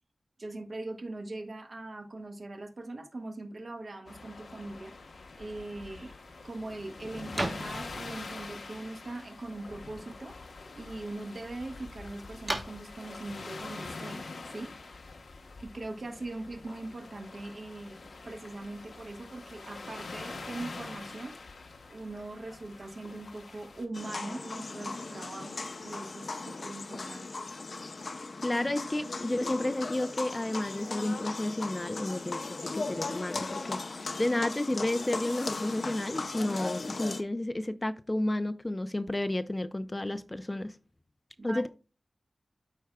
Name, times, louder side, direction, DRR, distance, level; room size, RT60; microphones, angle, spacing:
voice 1, 0.4-6.1 6.4-10.4 10.8-14.7 15.6-18.0 18.2-21.4 21.9-27.4 41.4-41.6, right 2 dB, 55° right, 1.4 m, -41 dB
sound 1, 4.1-23.9, left 3 dB, 90° left, 1.0 m, -45 dB
sound 2, 5.7-14.9, right 1 dB, 30° right, 1.4 m, -43 dB
sound 3, 23.9-37.2, left 3 dB, 60° left, 0.6 m, -37 dB
voice 2, 28.4-33.8 34.2-40.8 41.4-41.7, left 1 dB, 25° left, 0.4 m, -31 dB
13.0 x 4.6 x 2.3 m
wide cardioid pair, 100°, 0 cm